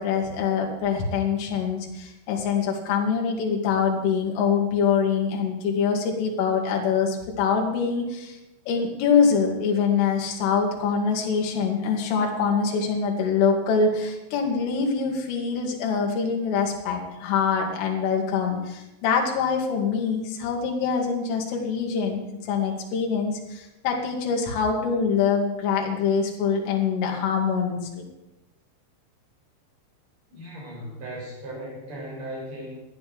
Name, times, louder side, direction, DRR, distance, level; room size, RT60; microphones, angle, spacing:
voice 1, 0.0-8.4 8.7-22.2 22.5-28.1, left 6 dB, 80° left, 0 dB, 4.6 m, -24 dB
voice 2, 30.3-32.8, right 1 dB, 35° right, -4 dB, 7.6 m, -37 dB
14.0 x 9.8 x 7.7 m, 0.92 s
omnidirectional pair, 5.7 m